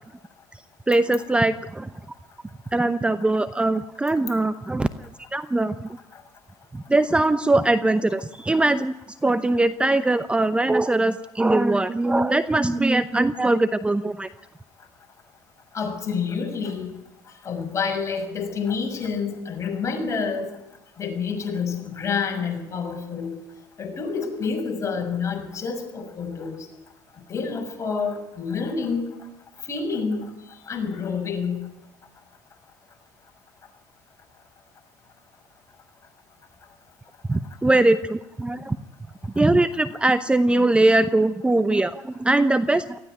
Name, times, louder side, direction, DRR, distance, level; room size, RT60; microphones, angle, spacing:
voice 1, 0.9-1.9 2.7-5.9 6.7-8.9 9.2-14.3 37.3-38.8 39.4-43.0, right 2 dB, 10° right, 11 dB, 0.8 m, -21 dB
voice 2, 15.7-16.9 17.4-20.5 21.0-23.3 23.8-26.6 27.3-29.1 29.7-30.3 30.6-31.6, left 5 dB, 35° left, 3 dB, 6.4 m, -28 dB
18.5 x 15.0 x 9.3 m, 0.91 s
hypercardioid pair, 70°, 9 cm